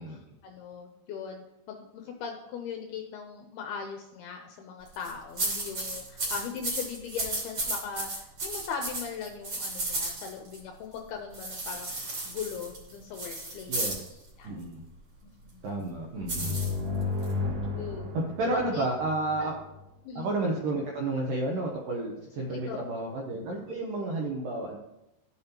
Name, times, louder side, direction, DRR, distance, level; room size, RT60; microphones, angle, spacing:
voice 1, 0.0-12.0 12.3-13.9 14.4-14.6 15.5-15.6 16.4-16.5 17.7-18.1 18.7-18.8 19.4-19.5 20.0-20.3 22.5-22.8, left 6 dB, 80° left, 3 dB, 2.3 m, -39 dB
sound 1, 4.9-5.1 5.4-10.6 11.3-14.1 16.3-17.3, right 2 dB, 35° right, 2.9 m, -34 dB
voice 2, 13.7-14.2 14.4-14.8 15.6-16.6 18.1-19.5 20.2-24.8, right 2 dB, 75° right, -1 dB, 2.0 m, -31 dB
sound 2, 16.2-19.8, left 3 dB, 60° right, 2.3 m, -33 dB
13.5 x 7.0 x 2.9 m, 0.91 s
omnidirectional pair, 5.2 m